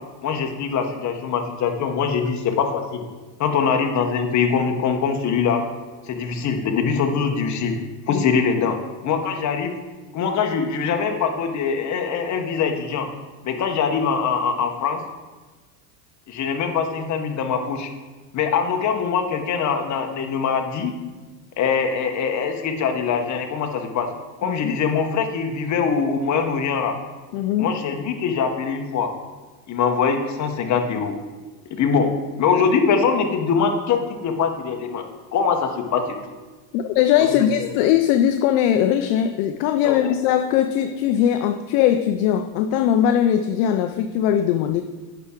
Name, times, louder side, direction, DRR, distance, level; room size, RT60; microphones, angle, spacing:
voice 1, 0.2-3.0 3.4-5.6 6.1-7.8 8.1-8.8 9.0-9.7 10.1-13.1 13.4-15.0 16.3-17.9 18.3-20.9 21.6-24.1 24.4-27.0 27.6-29.2 29.7-31.1 31.7-32.1 32.4-35.1 35.3-36.2 37.2-37.7 39.8-40.1, left 6 dB, 35° left, 4 dB, 1.0 m, -23 dB
voice 2, 24.4-24.8 27.3-27.8 36.7-44.8, left 10 dB, 60° left, 8 dB, 0.5 m, -20 dB
9.1 x 5.8 x 3.7 m, 1.3 s
supercardioid pair, 110°, 50 cm